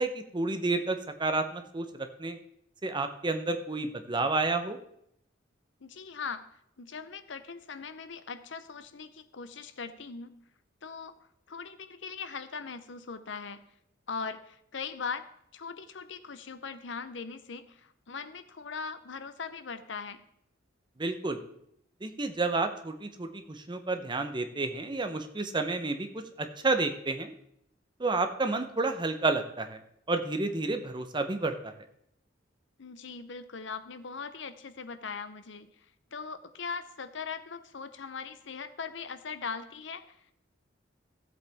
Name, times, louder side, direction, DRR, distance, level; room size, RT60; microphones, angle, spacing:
voice 1, 0.0-2.4 2.8-4.8 21.0-21.4 22.0-27.3 28.0-29.8 30.1-31.7, right 3 dB, 25° right, 7 dB, 0.8 m, -30 dB
voice 2, 5.8-6.5 6.8-10.4 10.8-11.1 11.5-13.6 14.1-15.2 15.5-20.2 32.8-35.7 36.1-40.2, left 5 dB, 70° left, 12 dB, 0.7 m, -40 dB
15.0 x 8.0 x 3.5 m, 0.75 s
head